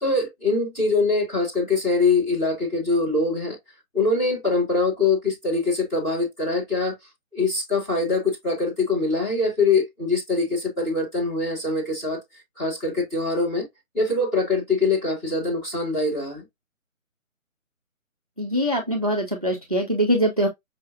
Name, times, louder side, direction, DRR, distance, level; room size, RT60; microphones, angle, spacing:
voice 1, 0.0-3.6 3.9-6.9 7.3-12.2 12.6-13.6 13.9-16.4, left 3 dB, 5° left, 1.5 m, -23 dB
voice 2, 18.4-20.5, equal, 30° right, 0.5 m, -23 dB
5.5 x 3.1 x 2.4 m
figure-of-eight pair, 150°, 42 cm